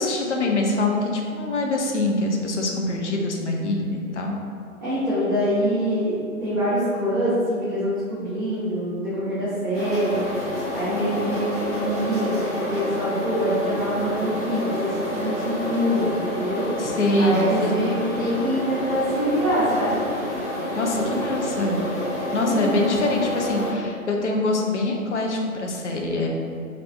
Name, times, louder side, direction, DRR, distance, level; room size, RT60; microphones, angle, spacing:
voice 1, 0.0-4.4 16.8-17.7 20.8-21.8 22.3-26.3, left 2 dB, 55° left, 1 dB, 0.6 m, -24 dB
voice 2, 4.8-16.9 17.2-20.0 21.0-21.1 22.3-22.7, equal, 15° right, -19 dB, 0.5 m, -25 dB
sound 1, 9.7-23.7, equal, 25° left, 1.2 m, -29 dB
3.2 x 3.0 x 2.4 m, 2.3 s
figure-of-eight pair, 130°, 43 cm